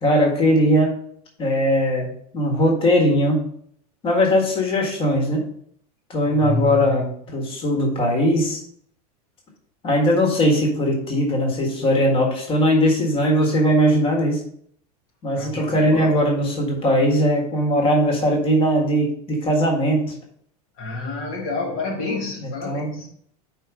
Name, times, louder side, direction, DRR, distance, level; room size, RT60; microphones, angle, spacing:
voice 1, 0.0-0.9 1.4-3.5 4.0-5.5 6.1-8.6 9.8-14.4 15.2-20.1 22.4-22.9, equal, 25° left, 1.7 m, -20 dB
voice 2, 6.3-7.0 15.3-16.2 20.8-23.1, left 2 dB, 55° left, 1.6 m, -29 dB
5.1 x 4.5 x 6.1 m
supercardioid pair, 160°, 20 cm